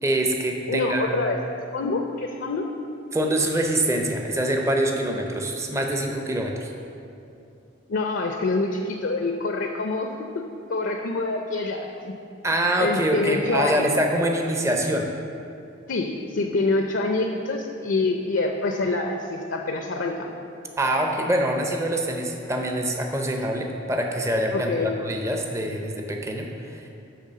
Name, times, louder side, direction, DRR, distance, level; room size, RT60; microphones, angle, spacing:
voice 1, 0.0-1.2 3.1-6.7 12.4-15.1 20.8-26.9, right 1 dB, 15° right, 2 dB, 0.5 m, -25 dB
voice 2, 0.7-1.4 1.7-2.7 7.9-12.1 12.8-13.8 15.9-20.3 24.5-24.9, left 3 dB, 60° left, 3 dB, 0.5 m, -26 dB
10.0 x 3.4 x 6.7 m, 2.6 s
head